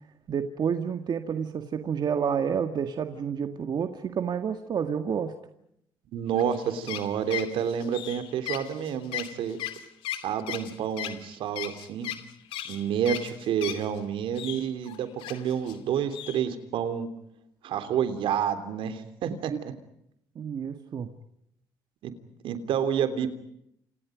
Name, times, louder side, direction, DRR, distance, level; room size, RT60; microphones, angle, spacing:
voice 1, 0.3-5.3 19.5-19.6 20.4-21.1, right 7 dB, 55° right, 7 dB, 1.9 m, -29 dB
voice 2, 6.1-9.6 10.2-12.1 12.6-17.1 17.6-19.5 22.0-22.1 22.4-23.3, right 8 dB, 75° right, 10 dB, 3.3 m, -29 dB
sound 1, 6.3-14.0 14.4-15.8 16.1-16.4, left 12 dB, 85° left, 2.6 m, -37 dB
30.0 x 28.0 x 5.1 m, 0.73 s
cardioid pair, 80°, 9 cm